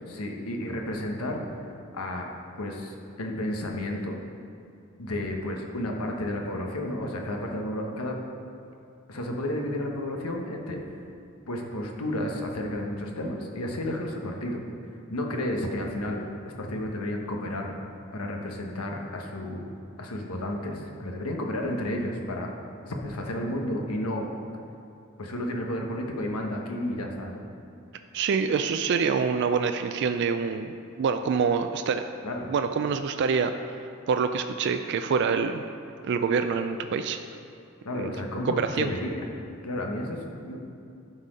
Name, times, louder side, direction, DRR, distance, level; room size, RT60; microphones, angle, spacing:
voice 1, 0.0-1.5 1.9-2.3 2.6-4.2 5.0-8.2 9.1-11.0 11.5-14.6 15.1-17.7 18.1-19.7 20.0-22.5 22.9-24.3 25.2-27.4 32.2-32.5 37.8-39.2 39.6-40.6, left 1 dB, 90° left, 1 dB, 1.1 m, -32 dB
voice 2, 28.1-32.0 32.5-33.8 34.1-35.6 36.1-37.2 37.9-38.2 38.4-38.9, right 5 dB, 50° right, 7 dB, 0.3 m, -26 dB
12.0 x 4.2 x 5.0 m, 2.7 s
head